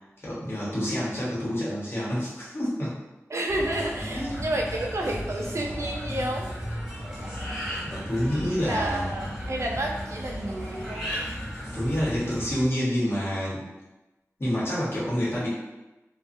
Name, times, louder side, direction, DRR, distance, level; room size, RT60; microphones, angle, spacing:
voice 1, 0.2-2.9 4.1-4.4 7.8-9.1 11.7-13.6 14.4-15.5, equal, 50° left, -8 dB, 1.1 m, -28 dB
voice 2, 3.3-6.5 8.6-11.3, right 1 dB, 60° right, 0 dB, 0.4 m, -30 dB
sound 1, 3.5-12.6, equal, 10° right, 1.1 m, -35 dB
2.5 x 2.3 x 2.5 m, 1.0 s
wide cardioid pair, 60°, 5 cm